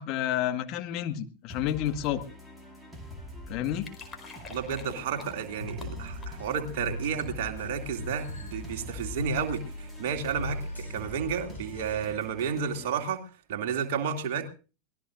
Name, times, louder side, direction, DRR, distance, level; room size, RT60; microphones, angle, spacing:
voice 1, 0.0-2.2 3.5-3.8, left 11 dB, 40° left, 7 dB, 1.6 m, -30 dB
sound 1, 1.5-12.9, left 1 dB, 5° right, 4.3 m, -44 dB
sound 2, 3.4-11.0, left 4 dB, 20° left, 4.5 m, -51 dB
voice 2, 4.5-13.2 13.5-14.5, right 7 dB, 50° right, 4 dB, 2.6 m, -32 dB
sound 3, 5.6-12.0, left 1 dB, 80° left, 6.3 m, -40 dB
24.0 x 19.0 x 2.6 m, 0.36 s
figure-of-eight pair, 90°, 0 cm